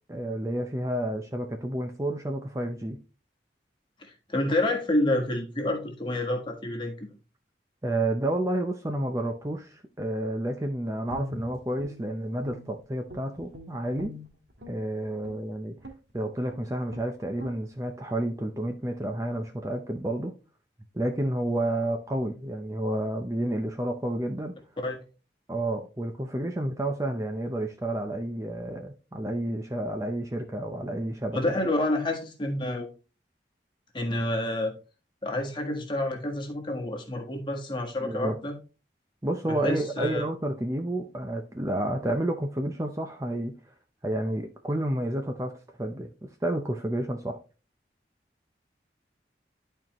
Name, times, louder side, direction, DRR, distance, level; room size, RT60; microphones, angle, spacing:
voice 1, 0.1-3.0 7.8-14.1 14.7-15.7 16.1-20.4 20.9-24.5 25.5-31.6 38.0-38.4 39.2-43.5 44.0-45.5 45.8-46.1 46.4-47.4, right 1 dB, 15° right, 0.6 m, -30 dB
voice 2, 4.0-7.1 24.8-25.0 31.3-32.9 33.9-34.7 35.2-38.5 39.5-40.2, left 1 dB, 25° left, 1.5 m, -28 dB
Guitar, 11.1-12.8 13.1-14.8 15.2-15.4 15.8-16.1 16.5-16.6 16.9-17.1 17.4-17.6, left 1 dB, 75° right, 1.7 m, -42 dB
11.0 x 4.5 x 3.0 m
head